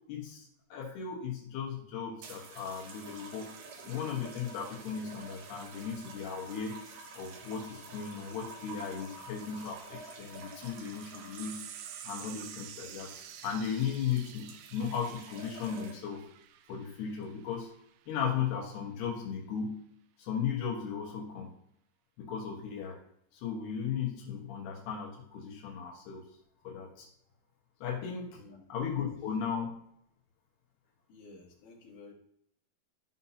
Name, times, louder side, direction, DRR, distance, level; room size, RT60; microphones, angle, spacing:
voice 1, 0.1-6.8 7.2-11.6 12.0-13.1 13.4-16.3 16.7-17.7 18.1-19.8 20.2-21.5 22.2-23.0 23.3-26.2 26.6-27.1 27.8-28.4 28.7-29.8, left 7 dB, 85° left, -1 dB, 3.4 m, -36 dB
sound 1, 2.2-16.2 17.1-17.4, right 4 dB, 70° right, 1.7 m, -49 dB
sound 2, 11.4-18.2, right 11 dB, 85° right, 2.0 m, -49 dB
voice 2, 28.4-28.7 31.1-32.1, left 3 dB, 60° left, -4 dB, 3.6 m, -53 dB
13.5 x 5.7 x 2.8 m, 0.72 s
omnidirectional pair, 4.6 m